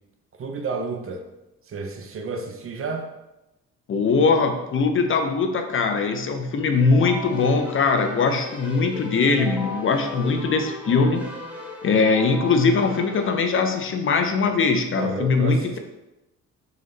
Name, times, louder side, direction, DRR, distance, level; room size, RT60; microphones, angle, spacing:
voice 1, 0.4-1.3 1.7-3.1 14.9-15.8, right 4 dB, 45° right, 4 dB, 0.6 m, -31 dB
voice 2, 3.9-11.2 11.8-15.8, left 4 dB, 45° left, 6 dB, 0.5 m, -21 dB
Keyboard (musical), 6.8-13.4, left 1 dB, 5° right, 0.9 m, -36 dB
3.9 x 3.1 x 3.8 m, 0.96 s
cardioid pair, 90°, 30 cm